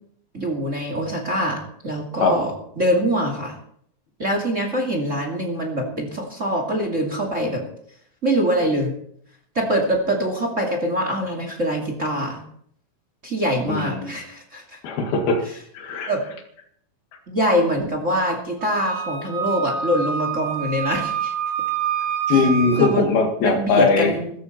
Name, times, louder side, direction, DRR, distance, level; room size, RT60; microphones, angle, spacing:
voice 1, 0.3-3.6 4.2-7.6 8.2-8.9 9.5-12.4 13.2-14.8 16.1-16.2 17.3-21.3 22.3-22.4 22.8-23.1 23.4-24.3, equal, 25° right, 3 dB, 2.2 m, -24 dB
voice 2, 13.7-14.2 14.8-15.4 15.7-16.1 22.3-24.1, left 4 dB, 80° left, 4 dB, 3.9 m, -20 dB
Wind instrument woodwind instrument, 18.6-22.9, right 7 dB, 85° right, 7.3 m, -27 dB
17.0 x 14.0 x 4.2 m, 0.66 s
omnidirectional pair, 4.3 m